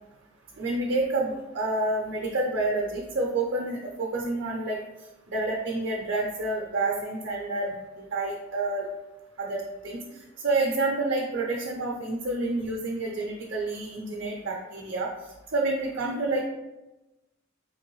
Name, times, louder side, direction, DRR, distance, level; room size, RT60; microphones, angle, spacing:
voice 1, 0.6-4.8 5.3-8.9 9.4-10.0 10.4-15.1 15.5-16.4, right 2 dB, 65° right, -2 dB, 0.6 m, -28 dB
3.8 x 2.9 x 3.1 m, 1.0 s
head